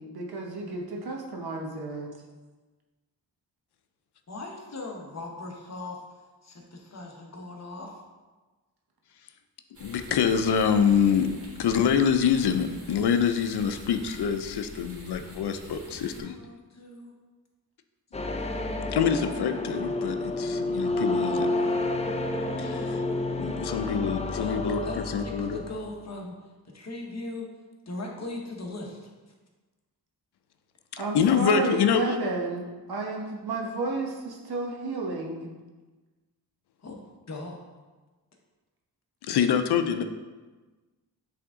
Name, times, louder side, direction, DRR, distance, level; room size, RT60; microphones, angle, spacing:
voice 1, 0.0-2.1 31.0-35.5, right 3 dB, 75° right, 0 dB, 1.1 m, -32 dB
voice 2, 4.3-6.0 6.4-8.0 15.9-17.1 24.4-26.4 26.6-27.5 27.9-29.1 36.8-37.0 37.3-37.6, left 2 dB, 45° left, 0 dB, 1.0 m, -39 dB
sound 1, 9.7-16.2, equal, 35° right, 1.6 m, -46 dB
voice 3, 9.8-11.3 11.6-16.4 18.9-22.0 22.6-23.0 23.4-25.6 30.9-32.2 39.2-40.0, left 7 dB, 85° left, 8 dB, 0.5 m, -25 dB
sound 2, 18.1-26.0, left 2 dB, 20° left, 0.4 m, -30 dB
7.7 x 3.5 x 3.7 m, 1.3 s
wide cardioid pair, 100°, 38 cm